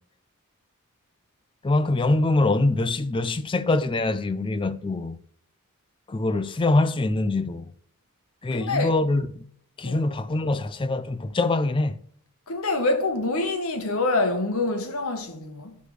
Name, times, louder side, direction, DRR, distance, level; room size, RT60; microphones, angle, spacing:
voice 1, 1.6-5.2 6.1-7.7 8.4-9.4 9.8-12.0, left 2 dB, 25° left, 0.4 m, -24 dB
voice 2, 8.5-9.0 9.8-10.1 12.5-15.8, left 2 dB, 70° left, 1.2 m, -26 dB
11.5 x 6.4 x 3.3 m
head